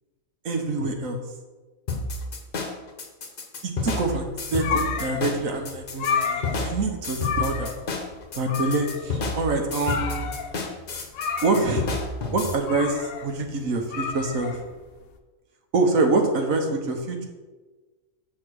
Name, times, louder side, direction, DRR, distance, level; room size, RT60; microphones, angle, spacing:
voice 1, 0.4-1.2 3.6-4.2 4.5-7.7 8.3-10.3 11.4-11.9 12.3-14.6 15.7-17.3, right 3 dB, 70° right, 3 dB, 1.4 m, -25 dB
sound 1, 1.9-12.5, left 3 dB, 45° left, 1.0 m, -30 dB
sound 2, 4.1-15.1, left 6 dB, 80° left, 1.1 m, -31 dB
6.8 x 4.3 x 6.3 m, 1.3 s
omnidirectional pair, 1.5 m